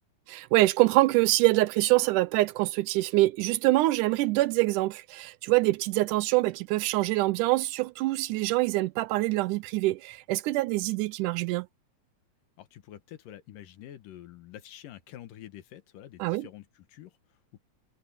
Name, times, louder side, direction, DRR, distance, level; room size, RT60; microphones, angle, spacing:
voice 1, 0.3-11.7 16.2-16.5, right 19 dB, 80° right, 2.0 m, -25 dB
voice 2, 12.6-17.6, left 12 dB, 85° left, 2.9 m, -47 dB
omnidirectional pair, 3.8 m